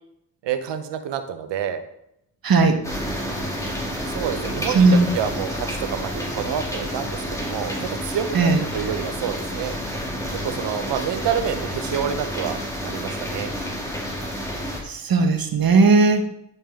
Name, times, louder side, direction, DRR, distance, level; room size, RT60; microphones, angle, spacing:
voice 1, 0.4-1.8 4.1-9.7 10.4-13.5, right 8 dB, 85° right, 9 dB, 0.9 m, -28 dB
voice 2, 2.4-2.8 4.7-5.1 8.3-8.6 14.8-16.2, right 3 dB, 55° right, 5 dB, 1.4 m, -17 dB
sound 1, 2.8-14.8, equal, 5° left, 2.7 m, -29 dB
10.5 x 5.5 x 3.7 m, 0.79 s
cardioid pair, 50°, 41 cm